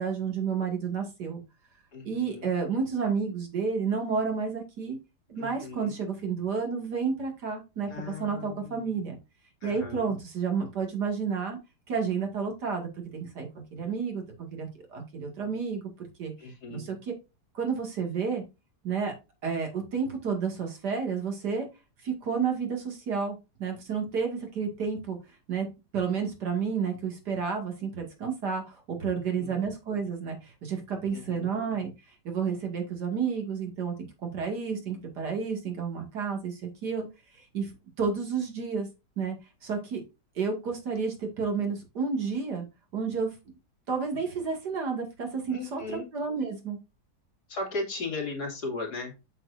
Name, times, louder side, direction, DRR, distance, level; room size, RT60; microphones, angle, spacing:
voice 1, 0.0-1.4 2.0-5.0 5.3-7.9 8.2-9.2 9.6-11.6 11.9-15.8 16.2-16.3 16.7-17.1 17.5-18.4 18.8-19.1 19.4-21.7 22.0-25.2 25.5-25.7 25.9-31.9 32.2-33.9 34.2-37.1 37.5-37.7 38.0-38.9 39.2-39.4 39.6-40.0 40.4-42.7 42.9-43.3 43.9-46.8, right 5 dB, 65° right, 3 dB, 2.7 m, -31 dB
voice 2, 1.9-2.5 5.4-6.0 7.9-8.8 9.6-10.1 16.4-17.0 29.4-29.6 31.1-31.5 45.5-46.1 47.5-49.1, left 3 dB, 65° left, 0 dB, 3.0 m, -37 dB
7.4 x 7.2 x 2.6 m, 0.26 s
omnidirectional pair, 1.9 m